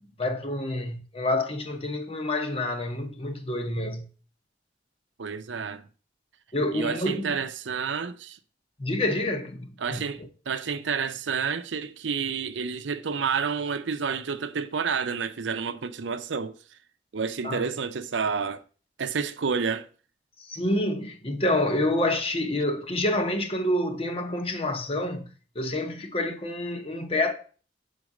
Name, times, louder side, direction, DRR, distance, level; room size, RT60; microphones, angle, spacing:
voice 1, 0.2-4.1 6.5-7.4 8.8-10.3 17.4-17.6 20.5-25.3 25.5-27.3, left 1 dB, 30° left, 0.9 m, -28 dB
voice 2, 5.2-5.8 6.7-8.4 9.8-16.6 17.1-18.6 19.0-19.9, right 6 dB, 90° right, 0.6 m, -29 dB
6.4 x 4.0 x 5.9 m
head